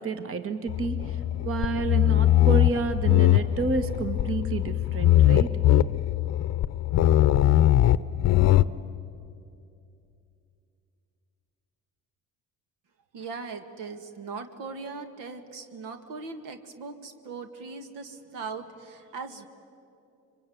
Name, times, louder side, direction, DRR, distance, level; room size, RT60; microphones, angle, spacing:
voice 1, 0.0-5.6, right 4 dB, 45° right, 9 dB, 1.6 m, -30 dB
sound 1, 0.7-8.6, left 13 dB, 55° left, 0.7 m, -21 dB
voice 2, 13.1-19.5, right 4 dB, 80° right, 7 dB, 1.9 m, -39 dB
26.0 x 23.5 x 9.4 m, 2.6 s
cardioid pair, 95°, 32 cm